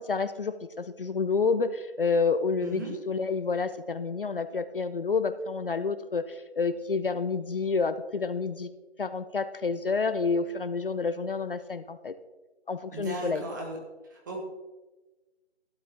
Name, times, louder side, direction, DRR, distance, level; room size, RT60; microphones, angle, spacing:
voice 1, 0.0-8.7 9.0-12.1 12.7-13.5, left 4 dB, 50° left, 12 dB, 0.6 m, -29 dB
voice 2, 2.6-2.9 12.9-13.8 14.1-14.4, right 2 dB, 15° right, 0 dB, 1.4 m, -36 dB
12.5 x 12.5 x 3.5 m, 1.2 s
hypercardioid pair, 170°, 34 cm